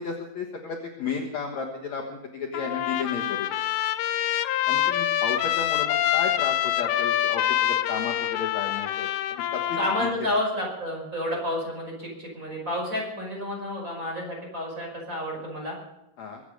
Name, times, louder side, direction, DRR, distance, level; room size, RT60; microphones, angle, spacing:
voice 1, 0.0-3.5 4.7-10.1 16.2-16.4, left 5 dB, 55° left, 1 dB, 2.3 m, -33 dB
Trumpet, 2.5-10.1, left 12 dB, 85° left, 2.7 m, -26 dB
voice 2, 9.8-15.7, left 1 dB, 20° right, -1 dB, 5.3 m, -30 dB
23.0 x 8.6 x 6.5 m, 0.91 s
omnidirectional pair, 4.3 m